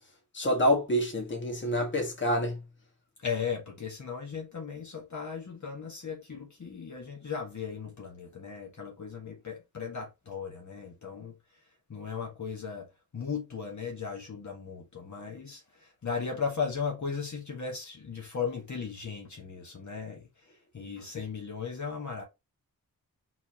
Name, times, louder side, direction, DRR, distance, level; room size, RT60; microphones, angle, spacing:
voice 1, 0.3-2.6, equal, 30° left, 1.5 m, -27 dB
voice 2, 3.2-11.3 11.9-12.9 13.1-20.3 20.7-22.2, left 6 dB, 50° left, 1.4 m, -36 dB
4.7 x 4.0 x 2.8 m
wide cardioid pair, 115°, 36 cm